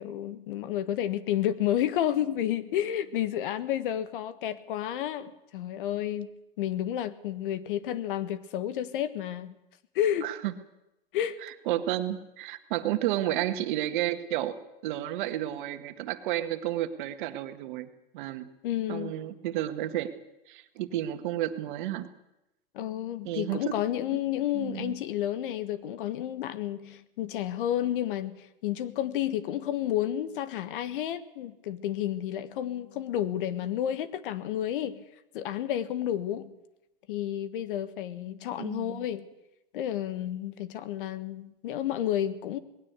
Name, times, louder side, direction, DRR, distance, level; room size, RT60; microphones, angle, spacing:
voice 1, 0.0-6.3 6.6-9.6 10.0-10.3 11.1-11.4 18.6-19.1 22.7-35.0 35.3-36.6 37.1-39.3 39.7-42.6, left 11 dB, 65° left, 1.6 m, -31 dB
voice 2, 10.2-10.5 11.4-14.6 14.8-17.9 18.1-18.5 18.9-20.1 20.5-22.1 23.2-23.7 24.6-24.9 38.6-39.0, right 13 dB, 55° right, 1.8 m, -31 dB
20.0 x 16.5 x 8.3 m
hypercardioid pair, 130°, 29 cm